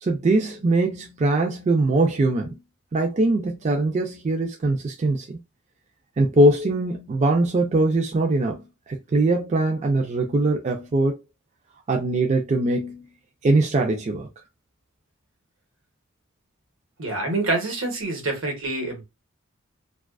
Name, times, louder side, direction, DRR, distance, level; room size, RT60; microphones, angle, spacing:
voice 1, 0.0-2.6 2.9-5.4 6.2-11.2 11.9-13.1 13.4-14.3, right 2 dB, 35° right, 0.4 m, -22 dB
voice 2, 17.0-19.0, right 2 dB, 80° right, 1.0 m, -26 dB
2.3 x 2.3 x 2.2 m
head